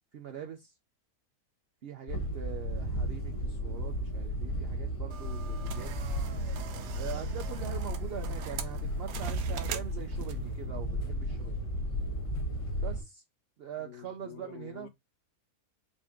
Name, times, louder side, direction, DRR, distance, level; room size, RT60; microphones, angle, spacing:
voice 1, 0.1-0.7 1.8-6.0 7.0-11.6 12.8-13.2 13.6-14.9, right 8 dB, 70° right, 0.5 m, -43 dB
sound 1, 2.1-13.0, equal, 55° left, 1.5 m, -34 dB
sound 2, 5.1-10.6, right 8 dB, 90° right, 1.2 m, -43 dB
voice 2, 13.8-14.9, left 11 dB, 90° left, 1.4 m, -48 dB
5.0 x 2.7 x 3.5 m
omnidirectional pair, 1.7 m